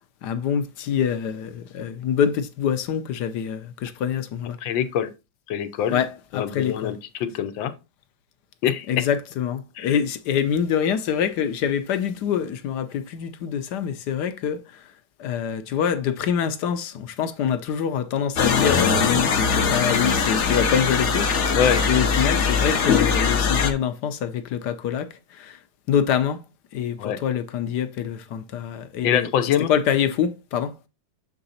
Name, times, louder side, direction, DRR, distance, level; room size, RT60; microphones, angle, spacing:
voice 1, 0.2-4.6 5.9-6.9 8.9-14.8 15.2-21.6 21.8-25.6 25.9-26.4 26.7-29.3 29.7-30.7, left 8 dB, 70° left, 1.2 m, -25 dB
voice 2, 4.6-5.1 5.5-6.0 6.3-7.7 8.6-8.9 9.8-9.9 21.5-21.8 27.0-27.2 29.0-29.7, left 9 dB, 85° left, 1.5 m, -24 dB
sound 1, 18.4-23.7, left 5 dB, 50° left, 0.9 m, -21 dB
7.0 x 3.8 x 4.1 m
omnidirectional pair, 2.0 m